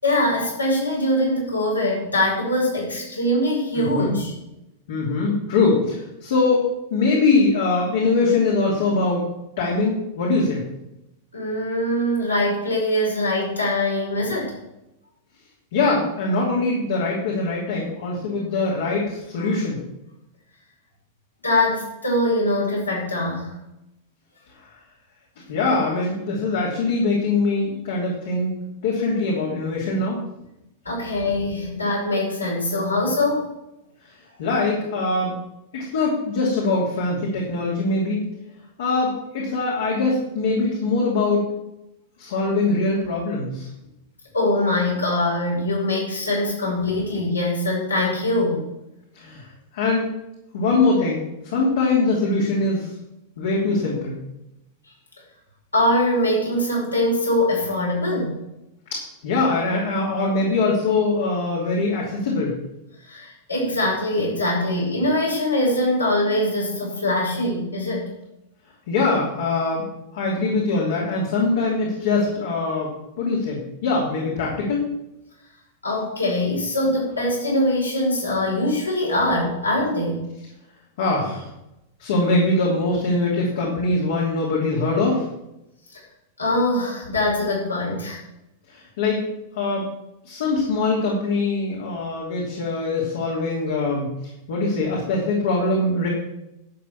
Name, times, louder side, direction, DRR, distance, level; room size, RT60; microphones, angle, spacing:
voice 1, 0.0-4.3 11.3-14.6 19.4-19.5 21.4-23.5 30.8-33.5 44.3-48.6 55.7-58.4 63.0-68.1 75.8-80.2 86.4-88.2, left 1 dB, 80° left, -3 dB, 5.5 m, -23 dB
voice 2, 3.7-4.1 4.9-9.2 9.6-10.6 15.7-19.8 25.5-28.5 28.8-30.2 34.4-35.3 35.7-38.2 38.8-41.5 42.2-43.7 49.1-49.5 49.7-50.1 50.5-52.9 53.4-54.2 58.9-62.5 68.9-69.8 70.1-74.9 81.0-81.5 82.0-85.2 88.7-89.2 89.5-89.9 90.2-94.1 94.5-96.1, left 3 dB, 60° left, -3 dB, 3.0 m, -22 dB
11.5 x 6.6 x 7.4 m, 0.89 s
figure-of-eight pair, 90°, 0 cm